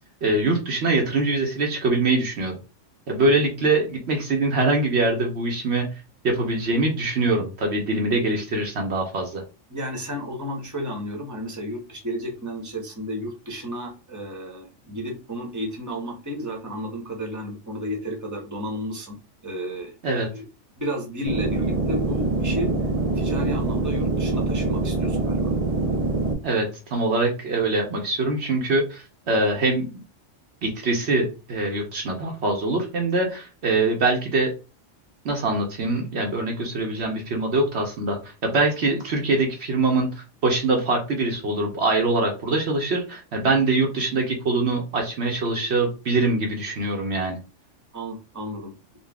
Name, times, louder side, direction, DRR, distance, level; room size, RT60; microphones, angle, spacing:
voice 1, 0.2-2.6 3.1-5.9 6.2-9.4 20.0-20.3 26.4-30.0 30.6-34.5 35.2-47.4, right 2 dB, 65° right, 2 dB, 1.1 m, -23 dB
voice 2, 9.7-19.2 19.4-19.9 20.3-20.4 20.7-22.7 23.1-25.5 47.9-48.7, equal, 15° right, 1 dB, 1.0 m, -32 dB
sound 1, 21.3-26.3, right 2 dB, 40° right, 0.6 m, -24 dB
3.9 x 2.3 x 3.4 m, 0.31 s
omnidirectional pair, 1.3 m